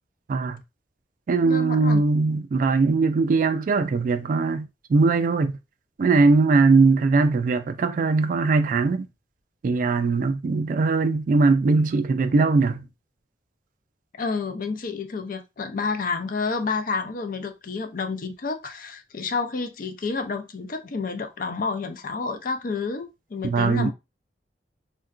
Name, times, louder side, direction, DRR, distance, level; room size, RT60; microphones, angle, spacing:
voice 1, 0.3-0.6 1.3-5.5 6.0-9.1 9.6-12.8 23.4-23.9, right 3 dB, 50° right, 0.3 m, -20 dB
voice 2, 1.4-2.0 14.2-23.9, left 4 dB, 50° left, 0.5 m, -29 dB
3.6 x 2.2 x 2.4 m
head